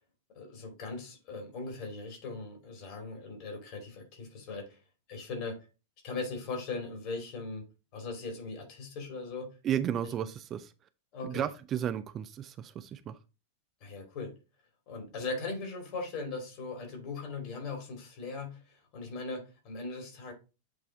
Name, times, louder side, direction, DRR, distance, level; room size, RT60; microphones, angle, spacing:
voice 1, 0.3-4.8 5.1-5.7 6.0-7.6 7.9-9.5 11.1-11.5 13.8-14.3 14.9-20.3, left 3 dB, 45° left, 2.5 m, -39 dB
voice 2, 9.6-10.7 11.2-13.2, right 10 dB, 30° right, 0.4 m, -33 dB
7.9 x 3.4 x 3.7 m
figure-of-eight pair, 90°, 0 cm